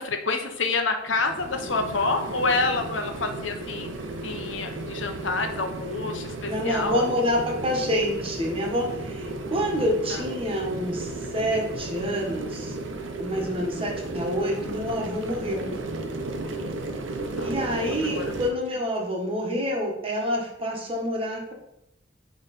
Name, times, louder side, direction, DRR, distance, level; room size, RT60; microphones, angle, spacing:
voice 1, 0.0-3.9 4.2-7.0 10.1-10.2 13.5-13.6 16.6-18.2, left 3 dB, 80° left, 5 dB, 0.8 m, -28 dB
sound 1, 1.1-18.5, right 2 dB, 90° right, 0.8 m, -34 dB
voice 2, 6.4-12.7 13.2-15.7 17.4-21.5, equal, 30° right, 0 dB, 1.3 m, -27 dB
8.6 x 3.2 x 4.2 m, 0.84 s
head